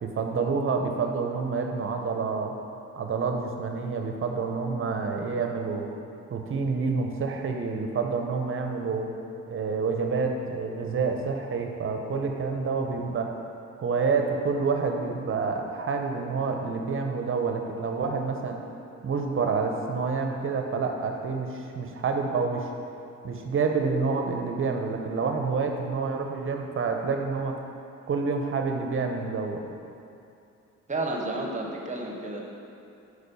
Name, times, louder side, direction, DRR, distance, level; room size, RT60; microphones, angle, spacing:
voice 1, 0.0-2.5 3.0-5.9 6.3-9.1 9.5-13.3 13.8-18.6 19.0-22.7 23.2-27.6 28.1-29.6, right 4 dB, 45° right, 3 dB, 0.8 m, -28 dB
voice 2, 30.9-32.4, right 2 dB, 25° right, 0 dB, 1.1 m, -31 dB
6.6 x 4.8 x 5.3 m, 2.7 s
cardioid pair, 90°, 30 cm